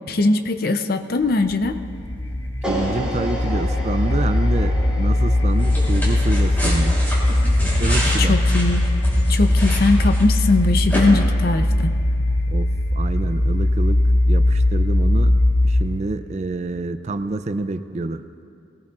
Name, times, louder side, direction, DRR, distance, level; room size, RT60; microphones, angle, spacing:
voice 1, 0.1-1.8 8.2-8.9 9.3-11.9, left 2 dB, 50° left, 8 dB, 0.6 m, -20 dB
sound 1, 1.2-16.1, left 1 dB, 80° left, 1.4 m, -20 dB
sound 2, 2.6-8.8, equal, 5° right, 3.4 m, -33 dB
voice 2, 2.7-7.0 7.8-8.4 12.5-12.7 12.9-14.0 14.3-18.2, right 3 dB, 35° right, 10 dB, 0.4 m, -27 dB
sound 3, 5.6-10.5 10.9-11.0, equal, 10° left, 3.6 m, -28 dB
20.0 x 18.0 x 2.5 m, 2.5 s
head